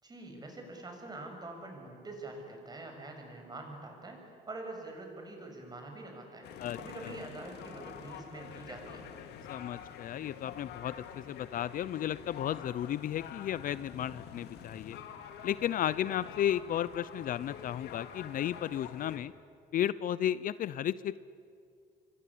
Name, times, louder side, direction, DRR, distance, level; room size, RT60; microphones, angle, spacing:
voice 1, 0.0-9.1, right 2 dB, 25° right, 3 dB, 6.7 m, -45 dB
sound 1, 6.4-19.2, left 8 dB, 80° left, 2.2 m, -47 dB
voice 2, 9.5-15.0 15.4-19.3 19.7-21.2, left 11 dB, 55° left, 18 dB, 0.6 m, -33 dB
27.5 x 24.0 x 8.5 m, 2.3 s
cardioid pair, 110°, 17 cm